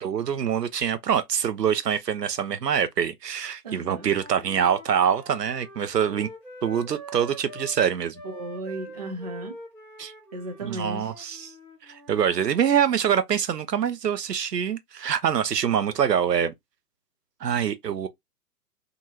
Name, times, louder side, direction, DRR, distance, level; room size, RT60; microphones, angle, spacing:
voice 1, 0.0-6.3 6.6-8.2 10.0-10.1 10.6-11.5 11.9-16.5 17.4-18.1, right 8 dB, 80° right, 0.7 m, -25 dB
voice 2, 3.6-4.1 8.2-9.5 10.3-11.1, right 1 dB, 30° right, 0.3 m, -35 dB
Wind instrument woodwind instrument, 3.9-7.8 8.1-12.5, right 1 dB, 5° left, 0.7 m, -44 dB
2.7 x 2.6 x 2.7 m
figure-of-eight pair, 120°, 48 cm